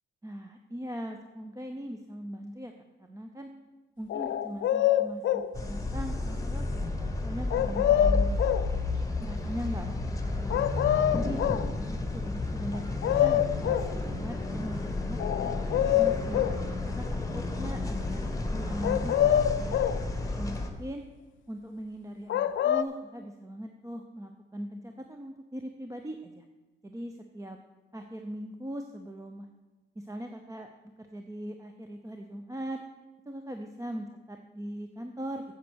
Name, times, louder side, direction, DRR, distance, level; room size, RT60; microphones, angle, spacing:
voice 1, 0.2-2.7 3.0-3.5 4.0-8.4 8.7-8.8 9.2-10.7 11.0-11.4 11.8-16.4 16.9-20.0 20.4-21.0 21.5-26.4 26.8-27.6 27.9-29.5 30.0-30.7 31.0-32.8 33.3-35.4, equal, 15° right, 4 dB, 0.6 m, -40 dB
sound 1, 4.1-5.5 7.5-8.7 10.5-11.7 12.7-12.8 13.0-13.9 15.2-16.6 18.8-20.0 22.3-22.8, left 11 dB, 70° left, 0.5 m, -25 dB
sound 2, 5.5-20.7, left 2 dB, 15° left, 1.2 m, -32 dB
8.2 x 7.8 x 6.3 m, 1.2 s
cardioid pair, 120°, 20 cm